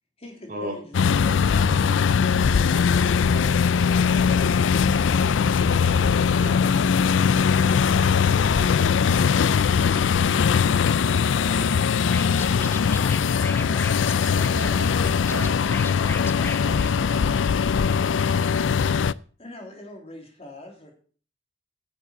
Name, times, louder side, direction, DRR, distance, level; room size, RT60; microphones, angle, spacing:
voice 1, 0.2-3.6 19.4-20.9, left 2 dB, 35° left, 2 dB, 3.3 m, -43 dB
sound 1, 0.9-19.1, left 6 dB, 75° left, 0.4 m, -21 dB
voice 2, 4.1-5.6 14.2-15.6 16.4-17.5, right 2 dB, 80° right, 4 dB, 2.3 m, -41 dB
voice 3, 6.4-7.3 7.8-9.2 11.6-12.1, equal, 45° right, 3 dB, 3.2 m, -38 dB
Scratching (performance technique), 12.0-17.5, left 3 dB, 10° left, 0.5 m, -37 dB
9.6 x 7.5 x 7.0 m, 0.42 s
head